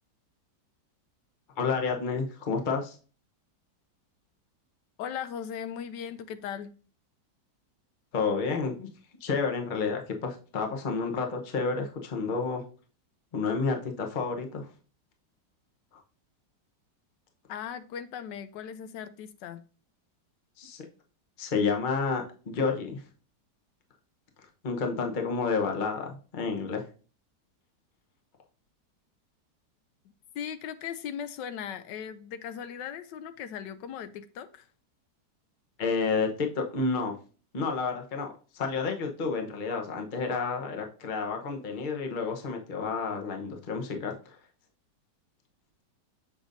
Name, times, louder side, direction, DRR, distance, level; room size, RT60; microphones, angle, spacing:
voice 1, 1.6-3.0 8.1-8.9 9.2-12.6 13.3-14.7 15.9-16.0 20.6-20.9 21.4-23.0 24.6-26.8 35.8-37.1 37.5-44.4, left 4 dB, 35° left, 0.9 m, -30 dB
voice 2, 5.0-6.7 17.5-19.6 30.3-34.7, left 8 dB, 80° left, 1.2 m, -38 dB
6.8 x 6.1 x 2.6 m
omnidirectional pair, 1.9 m